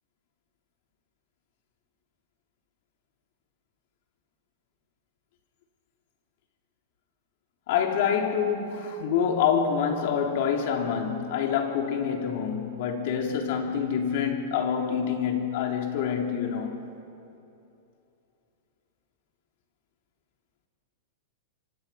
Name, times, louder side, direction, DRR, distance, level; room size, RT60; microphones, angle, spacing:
voice 1, 7.7-16.8, left 7 dB, 60° left, 3.4 m, -26 dB
26.0 x 25.5 x 5.8 m
hypercardioid pair, 140°, 0 cm